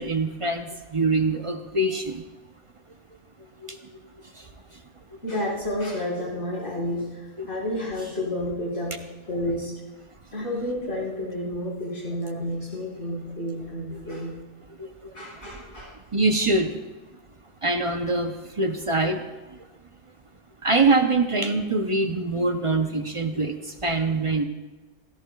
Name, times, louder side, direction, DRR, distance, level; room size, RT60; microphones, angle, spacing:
voice 1, 0.0-2.2 3.6-3.8 4.3-4.5 7.4-7.5 13.9-14.2 14.8-15.1 16.1-16.8 17.6-19.2 19.5-19.6 20.6-24.4, right 2 dB, 35° right, 6 dB, 0.6 m, -24 dB
voice 2, 5.2-9.0 9.3-9.7 10.3-14.3 15.1-16.0, left 1 dB, 70° left, -5 dB, 5.4 m, -30 dB
17.5 x 16.0 x 2.3 m, 1.2 s
omnidirectional pair, 1.3 m